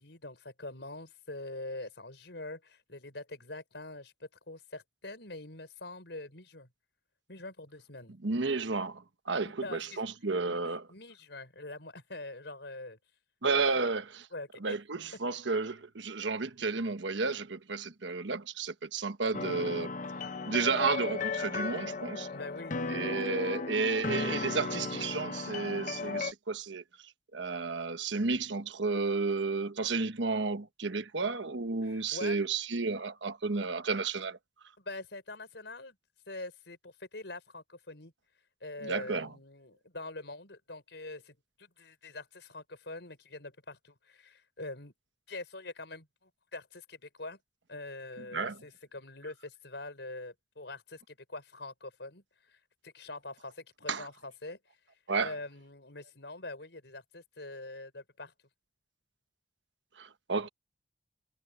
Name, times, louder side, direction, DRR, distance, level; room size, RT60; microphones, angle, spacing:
voice 1, 0.0-6.7 7.3-8.2 9.4-10.0 10.5-13.0 14.3-14.8 22.3-22.8 31.8-32.4 34.8-36.0 36.3-38.1 38.6-44.9 45.3-47.4 47.7-52.2 52.5-54.6 55.2-58.3, left 2 dB, 65° left, 6.0 m, -44 dB
voice 2, 8.2-10.9 13.4-14.3 14.6-19.9 20.5-22.3 22.9-26.8 27.3-34.4 38.8-39.3 48.2-48.6 53.9-54.1 55.1-55.3 60.0-60.5, right 4 dB, 75° right, 1.2 m, -32 dB
sound 1, 19.3-26.3, left 4 dB, 45° left, 0.7 m, -35 dB
head